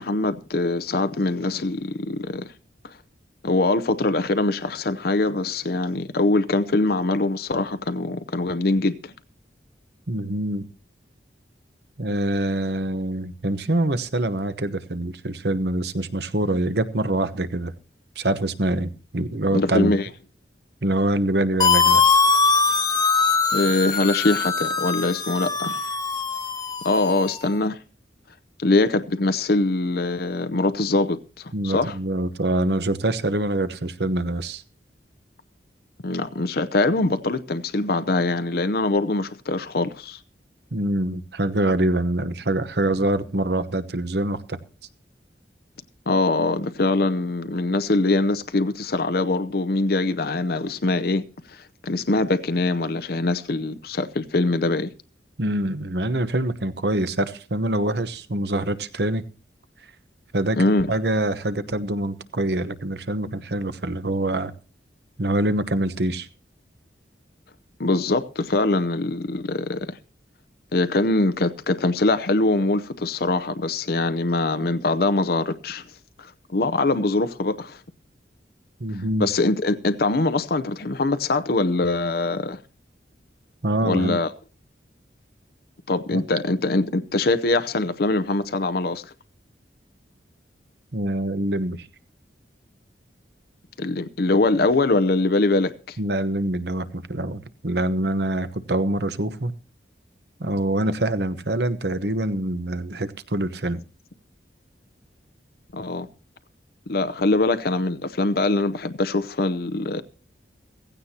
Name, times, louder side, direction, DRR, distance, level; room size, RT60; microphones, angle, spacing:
voice 1, 0.0-2.5 2.8-2.9 3.4-9.1 19.5-20.1 23.5-25.9 26.8-27.8 28.6-32.0 36.0-40.2 46.1-51.2 51.5-54.9 60.5-60.9 67.8-70.0 70.7-75.9 76.2-77.8 79.2-82.6 83.8-84.3 85.9-89.1 93.8-96.0 105.7-106.1 106.9-110.0, left 2 dB, 60° left, 0.7 m, -23 dB
voice 2, 10.1-10.7 12.0-17.7 18.2-19.9 20.8-22.0 31.5-34.6 40.7-44.6 55.4-59.2 60.3-60.6 60.9-64.5 65.2-66.3 78.8-79.3 83.6-84.2 86.1-86.3 90.9-91.9 96.0-99.5 100.4-103.8, right 1 dB, 65° right, 1.0 m, -25 dB
sound 1, 21.6-27.4, left 4 dB, 20° left, 1.4 m, -21 dB
16.0 x 16.0 x 2.9 m
head